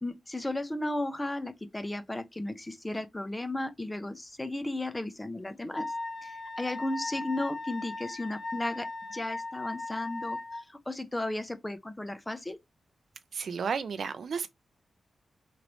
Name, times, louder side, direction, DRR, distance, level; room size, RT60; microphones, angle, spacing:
voice 1, 0.0-5.9 6.2-12.6, left 1 dB, 10° left, 0.4 m, -35 dB
Wind instrument woodwind instrument, 5.7-10.6, left 2 dB, 45° left, 0.8 m, -38 dB
voice 2, 13.3-14.5, right 6 dB, 60° right, 0.3 m, -32 dB
3.0 x 3.0 x 2.5 m
wide cardioid pair, 155°, 0 cm